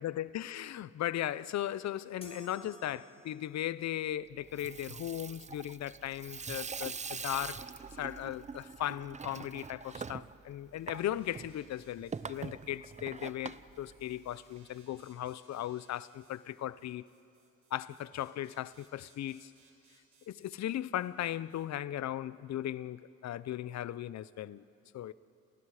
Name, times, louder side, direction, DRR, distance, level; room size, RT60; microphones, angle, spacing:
voice 1, 0.0-7.7 8.0-17.0 17.7-19.5 20.3-24.6 24.9-25.1, left 12 dB, 60° left, 0.7 m, -37 dB
sound 1, 2.2-3.7, left 1 dB, 20° left, 2.7 m, -52 dB
Water tap faucet / Sink (filling or washing), 4.4-14.6, right 5 dB, 25° right, 0.6 m, -44 dB
sound 2, 10.6-21.7, right 4 dB, 45° right, 5.4 m, -68 dB
30.0 x 28.0 x 4.9 m
cardioid pair, 90°, 30 cm